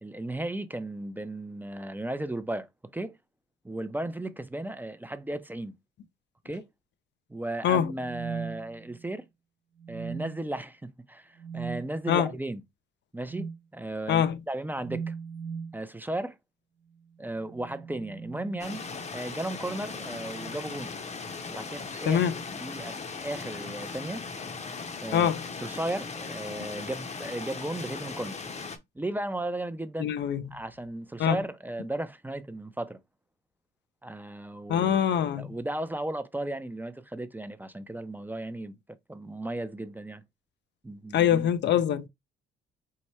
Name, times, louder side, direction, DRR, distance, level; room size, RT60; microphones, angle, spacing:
voice 1, 0.0-2.7 2.9-3.1 3.6-5.7 6.4-6.7 7.3-9.2 9.9-12.6 13.1-15.1 15.7-16.4 17.2-18.8 19.1-20.9 21.5-22.3 22.6-24.2 25.0-25.3 25.6-28.4 29.0-30.1 30.5-33.0 34.0-35.0 35.4-38.8 39.1-40.2 40.8-41.7, right 1 dB, 10° right, 0.5 m, -35 dB
sound 1, 7.8-9.2 9.8-10.6 11.4-11.8 13.3-13.6 14.8-15.8 17.3-19.1 20.2-20.7 21.9-22.2, right 6 dB, 70° right, 1.0 m, -39 dB
sound 2, 18.6-28.8, left 4 dB, 35° left, 0.8 m, -38 dB
voice 2, 22.1-22.4 25.1-25.4 30.0-30.4 31.2-31.4 34.7-35.5 41.1-42.0, left 9 dB, 65° left, 0.5 m, -24 dB
4.7 x 2.1 x 4.2 m
cardioid pair, 90°, 20 cm